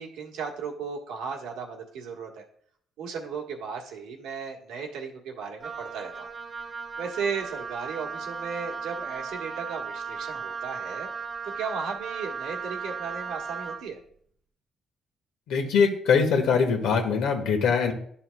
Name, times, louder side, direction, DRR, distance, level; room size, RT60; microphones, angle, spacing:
voice 1, 0.0-2.4 3.0-6.3 7.0-11.1 11.4-14.0, right 5 dB, 85° right, 0 dB, 1.4 m, -35 dB
Wind instrument woodwind instrument, 5.6-13.9, right 5 dB, 45° right, 0.5 m, -36 dB
voice 2, 15.5-17.9, left 6 dB, 80° left, 5 dB, 1.2 m, -22 dB
11.0 x 5.7 x 2.2 m, 0.63 s
supercardioid pair, 75°, 0 cm